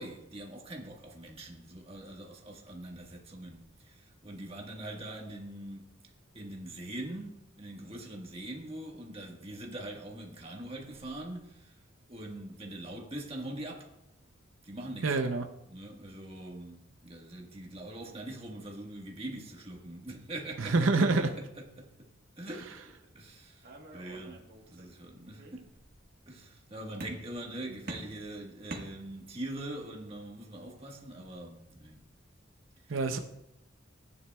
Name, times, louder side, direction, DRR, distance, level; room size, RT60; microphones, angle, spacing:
voice 1, 0.0-5.8 6.3-11.8 12.1-13.9 14.6-15.2 15.7-25.7 26.3-32.0 32.8-33.0, right 1 dB, 30° right, 1.5 m, -43 dB
voice 2, 15.0-15.5 20.6-21.3 32.9-33.2, right 3 dB, 75° right, 0.7 m, -26 dB
sound 1, 23.6-25.0 25.3-26.1 27.0-27.5 27.9-29.5, right 2 dB, 50° right, 1.4 m, -46 dB
14.5 x 9.6 x 2.3 m
head